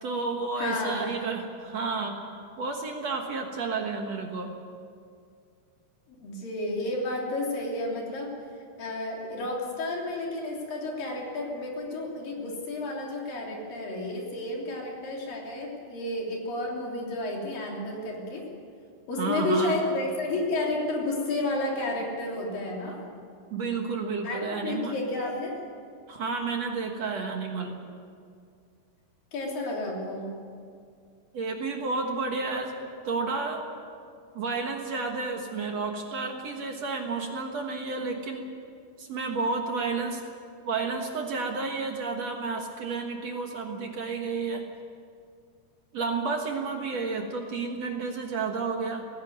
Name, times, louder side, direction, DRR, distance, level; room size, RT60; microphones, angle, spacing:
voice 1, 0.0-2.2 2.6-4.5 19.2-19.8 23.5-25.0 26.1-27.8 31.3-33.7 34.4-38.5 39.0-40.2 40.6-44.7 45.9-49.1, right 4 dB, 55° right, 2 dB, 2.0 m, -31 dB
voice 2, 0.6-1.1 6.2-8.3 8.8-18.5 19.1-23.0 24.2-25.6 29.3-30.3, left 2 dB, 60° left, -1 dB, 4.8 m, -31 dB
18.0 x 16.0 x 9.4 m, 2.2 s
omnidirectional pair, 4.7 m